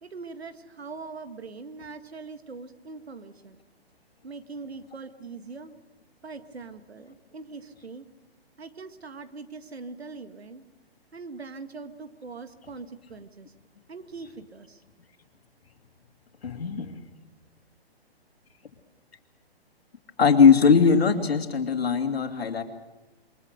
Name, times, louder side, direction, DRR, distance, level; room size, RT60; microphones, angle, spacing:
voice 1, 0.0-3.6 4.2-5.7 6.2-8.1 8.6-10.6 11.1-13.5 13.9-14.8, right 4 dB, 80° right, 9 dB, 2.0 m, -42 dB
voice 2, 16.4-17.0 20.2-22.6, left 6 dB, 70° left, 5 dB, 2.9 m, -20 dB
27.0 x 23.0 x 6.7 m, 1.0 s
figure-of-eight pair, 135°, 31 cm